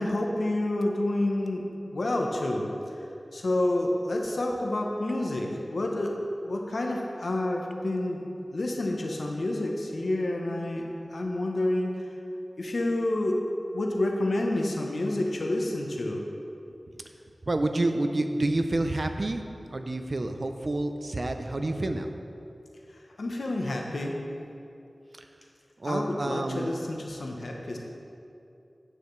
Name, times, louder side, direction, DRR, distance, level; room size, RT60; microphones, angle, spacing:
voice 1, 0.0-1.7 1.9-2.7 3.3-6.2 6.4-8.2 8.5-12.0 12.6-13.4 13.7-16.2 23.2-24.2 25.8-27.8, left 1 dB, 90° left, 1 dB, 0.9 m, -29 dB
voice 2, 17.5-19.4 19.7-22.1 25.8-26.7, right 2 dB, 65° right, 6 dB, 0.6 m, -28 dB
10.0 x 8.7 x 3.2 m, 2.7 s
wide cardioid pair, 45°, 0 cm